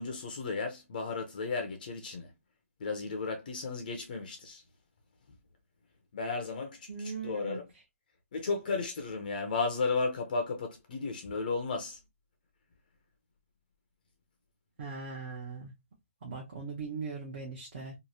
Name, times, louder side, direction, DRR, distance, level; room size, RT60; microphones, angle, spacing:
voice 1, 0.0-2.3 2.8-4.6 6.1-7.7 8.3-12.0, left 4 dB, 35° left, 0.5 m, -34 dB
voice 2, 6.9-7.6 14.8-15.7 16.2-18.0, right 4 dB, 35° right, 0.8 m, -39 dB
2.9 x 2.4 x 2.7 m
hypercardioid pair, 175°, 8 cm